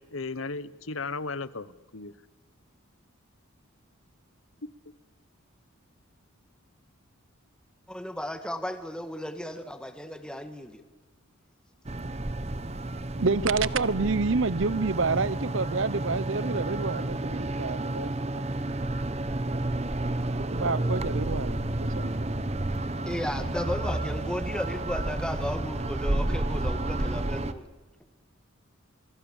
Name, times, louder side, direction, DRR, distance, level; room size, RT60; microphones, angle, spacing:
voice 1, 0.0-2.1, left 3 dB, 70° left, 17 dB, 1.0 m, -35 dB
voice 2, 7.9-10.8 23.1-27.6, equal, 5° left, 8 dB, 1.8 m, -34 dB
sound 1, 11.8-27.5, right 1 dB, 30° right, 1.0 m, -31 dB
voice 3, 13.2-18.4 20.4-22.4, right 4 dB, 65° right, 19 dB, 0.9 m, -28 dB
27.5 x 23.5 x 7.3 m, 1.2 s
head